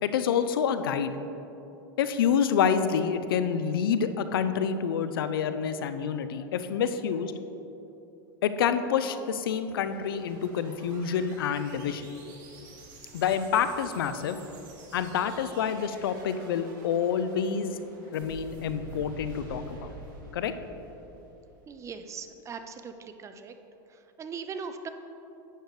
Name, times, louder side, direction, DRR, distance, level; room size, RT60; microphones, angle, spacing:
voice 1, 0.0-1.1 2.0-7.3 8.4-12.1 13.1-14.4 14.9-17.8 18.0-19.9 20.3-20.5, left 7 dB, 90° left, 11 dB, 0.5 m, -27 dB
sound 1, 9.4-21.8, right 3 dB, 60° right, 2.2 m, -48 dB
voice 2, 21.7-23.5 23.9-24.9, right 5 dB, 25° right, 8 dB, 0.6 m, -40 dB
11.0 x 8.2 x 3.2 m, 3.0 s
supercardioid pair, 115°, 12 cm